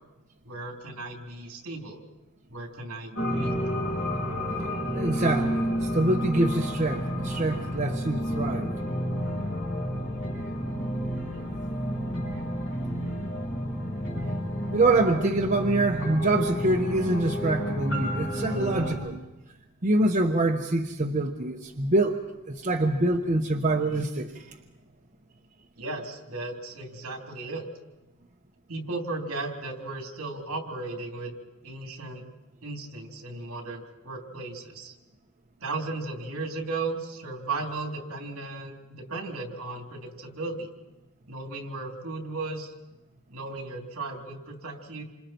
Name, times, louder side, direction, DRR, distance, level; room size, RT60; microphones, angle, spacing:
voice 1, 0.4-2.0 2.5-3.5 25.8-27.6 28.7-31.3 31.6-32.3 32.6-35.0 35.6-40.7 41.3-42.7 43.3-45.0, right 3 dB, 65° right, 2 dB, 3.4 m, -35 dB
sound 1, 3.1-18.9, equal, 55° left, 7.8 m, -30 dB
voice 2, 4.9-8.7 14.7-19.2 19.8-22.2 22.5-24.6, right 2 dB, 35° right, 2 dB, 1.0 m, -25 dB
28.0 x 26.5 x 4.5 m, 1.0 s
head